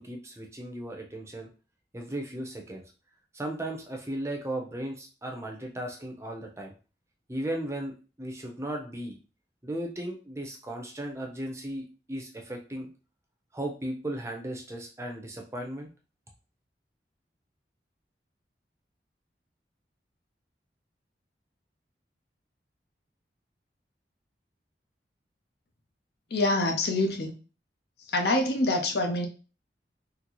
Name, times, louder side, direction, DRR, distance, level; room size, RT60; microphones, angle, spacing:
voice 1, 0.0-1.5 1.9-2.8 3.3-6.7 7.3-9.2 9.6-12.9 13.5-15.9, right 1 dB, 15° right, 2 dB, 0.5 m, -36 dB
voice 2, 26.3-27.3 28.1-29.3, left 2 dB, 65° left, 4 dB, 0.6 m, -25 dB
3.9 x 2.0 x 2.9 m, 0.34 s
head